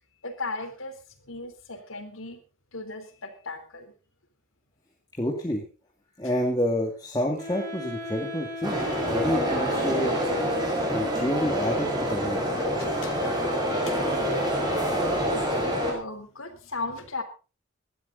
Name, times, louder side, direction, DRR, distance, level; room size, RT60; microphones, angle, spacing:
voice 1, 0.2-1.0 1.2-2.4 2.7-3.9 13.0-13.3 13.9-14.0 14.2-14.4 15.1-15.6 15.9-17.2, left 3 dB, 85° left, 8 dB, 3.8 m, -36 dB
voice 2, 5.2-5.6 6.2-8.8 9.1-10.1 10.5-10.6 10.9-12.4, equal, 20° left, -1 dB, 2.4 m, -28 dB
Wind instrument woodwind instrument, 7.4-11.5, left 2 dB, 40° right, 5.2 m, -38 dB
sound 1, 8.6-15.9, equal, 20° right, 5.3 m, -26 dB
18.5 x 13.0 x 4.0 m, 0.35 s
head